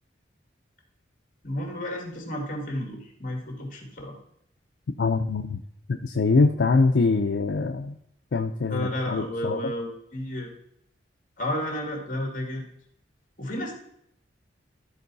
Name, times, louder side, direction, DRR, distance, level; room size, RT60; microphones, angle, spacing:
voice 1, 1.4-4.2 8.7-10.5 11.4-12.6 13.4-13.7, left 1 dB, 45° left, 1 dB, 2.2 m, -32 dB
voice 2, 5.0-5.6 5.9-7.9 8.3-9.7, left 3 dB, 75° left, 4 dB, 0.5 m, -23 dB
13.0 x 4.6 x 4.0 m, 0.72 s
head